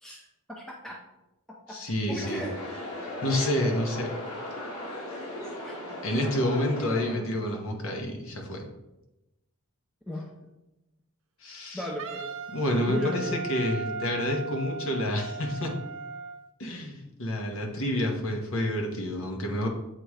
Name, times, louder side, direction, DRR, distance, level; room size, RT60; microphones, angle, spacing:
voice 1, 0.5-1.0 1.7-1.8 2.1-2.5 5.4-5.7 10.1-10.3 11.7-12.3 12.9-13.4, equal, ahead, -2 dB, 0.6 m, -35 dB
voice 2, 1.7-2.4 3.2-4.1 6.0-8.7 11.4-11.8 12.5-15.8 16.6-19.7, left 1 dB, 60° left, 2 dB, 1.1 m, -29 dB
sound 1, 2.2-7.2, left 1 dB, 90° left, 1.6 m, -37 dB
Wind instrument woodwind instrument, 12.0-16.4, right 4 dB, 60° right, 0.6 m, -37 dB
7.7 x 3.0 x 4.8 m, 0.94 s
head